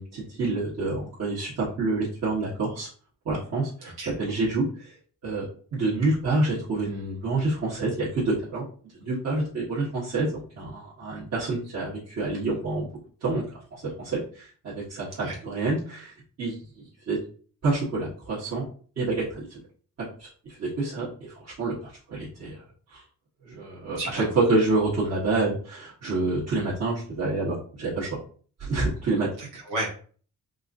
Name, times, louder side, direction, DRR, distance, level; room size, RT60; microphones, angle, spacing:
voice 1, 0.0-2.9 3.2-4.9 5.2-5.4 5.7-8.6 9.0-10.3 10.6-12.9 13.2-13.4 14.0-16.1 16.4-17.2 17.6-18.7 19.0-19.6 20.2-20.3 20.6-21.7 22.1-22.6 22.9-23.0 23.4-28.2 28.6-29.3, right 2 dB, 50° right, -10 dB, 1.5 m, -27 dB
voice 2, 24.0-24.4 29.4-29.9, right 1 dB, 90° right, -3 dB, 1.3 m, -32 dB
4.8 x 2.6 x 2.6 m, 0.43 s
cardioid pair, 130°, 32 cm